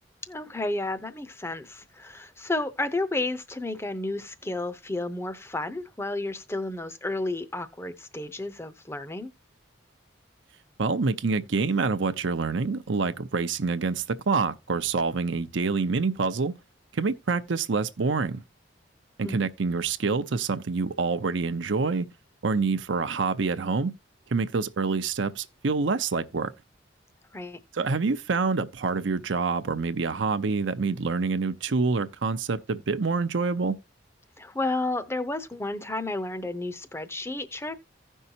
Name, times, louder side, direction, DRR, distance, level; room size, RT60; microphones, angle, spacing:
voice 1, 0.3-9.3 19.2-19.5 27.3-27.6 34.4-37.8, left 2 dB, 15° left, 0.6 m, -32 dB
voice 2, 10.8-16.5 16.9-18.4 19.2-22.1 22.4-23.9 24.3-26.5 27.7-33.8, right 4 dB, 75° right, 0.6 m, -26 dB
16.0 x 5.5 x 2.7 m
head